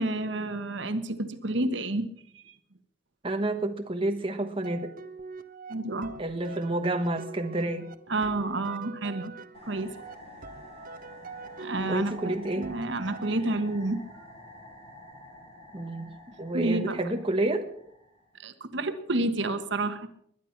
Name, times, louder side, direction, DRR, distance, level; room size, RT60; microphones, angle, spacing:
voice 1, 0.0-2.1 2.5-2.6 5.7-6.1 8.1-9.3 9.6-9.9 11.6-14.0 16.5-17.0 18.4-20.1, right 2 dB, 65° right, 9 dB, 1.3 m, -29 dB
voice 2, 3.2-4.9 6.2-7.9 11.9-12.7 15.7-16.1 16.4-17.7, right 2 dB, 25° right, 4 dB, 1.2 m, -29 dB
sound 1, 4.6-13.9, right 4 dB, 45° right, 0.9 m, -44 dB
sound 2, 9.5-18.4, left 1 dB, 30° left, 7.7 m, -49 dB
21.5 x 10.5 x 5.9 m, 0.68 s
head